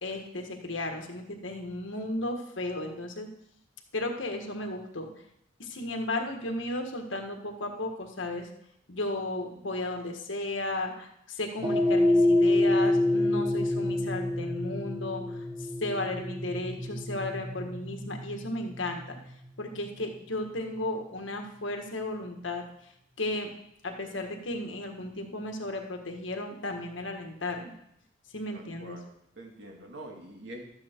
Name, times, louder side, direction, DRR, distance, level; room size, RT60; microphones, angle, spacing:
voice 1, 0.0-3.3 3.9-5.1 5.6-8.5 8.9-19.2 19.6-22.9 23.2-23.5 23.8-27.7 28.3-29.0, left 2 dB, 80° left, 3 dB, 1.6 m, -34 dB
sound 1, 11.6-20.1, left 1 dB, 20° right, 1.2 m, -27 dB
voice 2, 28.5-29.1 29.4-30.6, right 1 dB, 60° right, 1 dB, 2.2 m, -45 dB
12.5 x 8.9 x 4.5 m, 0.76 s
head